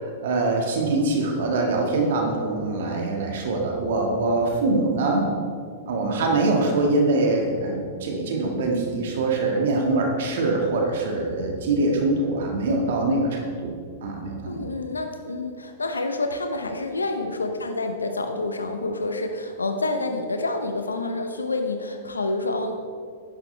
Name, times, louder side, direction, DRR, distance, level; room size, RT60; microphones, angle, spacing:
voice 1, 0.0-5.2 5.9-13.7 14.0-14.6, right 2 dB, 60° right, 1 dB, 1.8 m, -23 dB
voice 2, 14.4-22.7, left 2 dB, 85° left, 5 dB, 0.8 m, -28 dB
11.0 x 10.5 x 3.4 m, 2.1 s
figure-of-eight pair, 100°, 0 cm